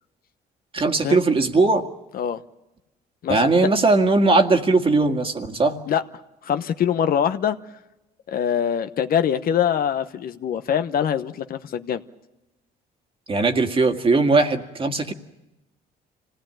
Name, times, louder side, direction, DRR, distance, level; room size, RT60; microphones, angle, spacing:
voice 1, 0.7-1.9 3.3-5.8 13.3-15.1, right 3 dB, 30° right, 6 dB, 1.9 m, -19 dB
voice 2, 3.2-3.7 5.9-6.0 6.4-7.6 8.3-12.0, left 9 dB, 55° left, 10 dB, 1.0 m, -23 dB
26.0 x 17.5 x 9.0 m, 0.99 s
cardioid pair, 90°, 17 cm